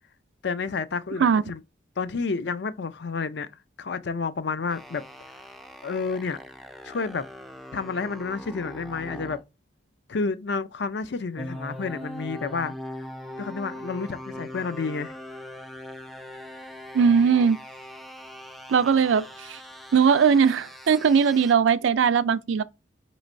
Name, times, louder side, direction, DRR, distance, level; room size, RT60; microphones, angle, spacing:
voice 1, 0.4-1.6 2.0-3.5 3.8-5.0 5.8-6.4 6.8-7.2 7.7-9.4 10.1-12.7 13.4-15.1, left 4 dB, 60° left, 0.5 m, -30 dB
sound 1, 4.7-9.4 11.3-21.5, left 1 dB, ahead, 0.3 m, -41 dB
voice 2, 16.9-17.6 18.7-19.6 19.9-22.6, right 6 dB, 75° right, 0.4 m, -20 dB
5.2 x 3.1 x 2.5 m
head